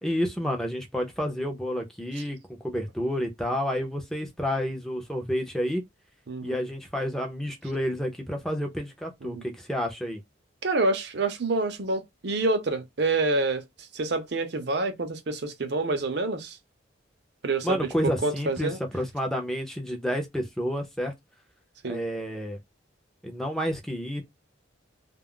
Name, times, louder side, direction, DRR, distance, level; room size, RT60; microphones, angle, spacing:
voice 1, 0.0-5.8 6.4-10.2 17.6-21.1 21.8-22.6 23.2-24.2, equal, ahead, 0.6 m, -30 dB
voice 2, 6.3-6.6 9.2-9.4 10.6-16.6 17.4-18.8 21.8-22.0, right 2 dB, 60° right, 0.6 m, -27 dB
2.3 x 2.0 x 3.6 m
head